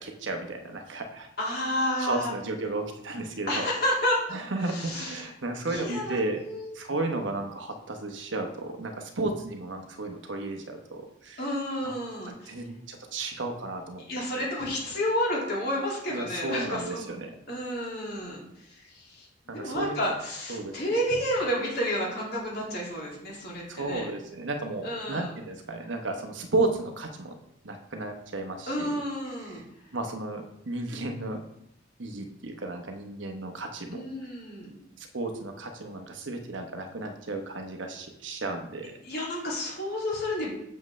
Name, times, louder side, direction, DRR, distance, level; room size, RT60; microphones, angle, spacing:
voice 1, 0.0-1.3 2.0-3.6 4.3-6.4 6.7-11.4 11.8-11.9 12.5-14.0 16.1-17.4 19.5-20.1 20.5-20.8 23.7-27.4 27.6-29.0 29.4-29.6 29.9-31.4 32.0-34.1 35.0-38.9, right 2 dB, 70° right, 4 dB, 1.0 m, -33 dB
voice 2, 1.4-2.3 3.5-4.2 4.6-5.3 5.6-6.7 11.4-12.6 14.1-17.1 17.5-24.1 24.8-25.3 28.7-29.6 33.9-34.7 39.0-40.5, equal, 55° left, -3 dB, 2.4 m, -31 dB
7.5 x 6.9 x 3.2 m, 0.77 s
head